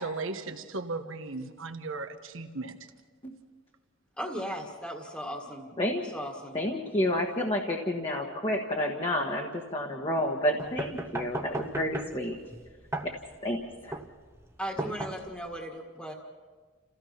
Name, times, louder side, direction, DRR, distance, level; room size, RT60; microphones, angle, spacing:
voice 1, 0.0-2.8, right 3 dB, 75° right, 7 dB, 1.3 m, -36 dB
voice 2, 4.2-5.7 6.1-6.6 14.6-16.1, equal, 5° left, 1 dB, 1.7 m, -37 dB
voice 3, 6.5-12.3 13.0-13.1 13.4-14.0, left 1 dB, 25° left, 0 dB, 1.4 m, -30 dB
sound 1, 10.6-15.6, right 2 dB, 15° right, 0.9 m, -37 dB
29.0 x 16.0 x 5.9 m, 1.5 s
head